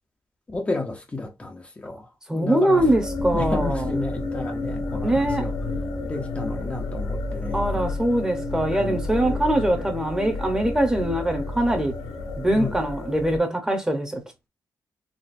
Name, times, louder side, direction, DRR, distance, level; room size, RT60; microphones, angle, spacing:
voice 1, 0.5-2.1 2.3-2.8 3.3-5.5 6.1-7.9 8.7-9.0 9.2-9.4 9.7-9.9 12.5-12.8, left 3 dB, 20° left, 0.6 m, -32 dB
voice 2, 2.3-3.9 5.0-5.5 7.5-12.0 12.4-14.2, right 1 dB, 10° right, 0.9 m, -23 dB
sound 1, 2.8-13.4, left 2 dB, 70° left, 1.0 m, -30 dB
4.2 x 2.6 x 2.6 m
wide cardioid pair, 150°, 6 cm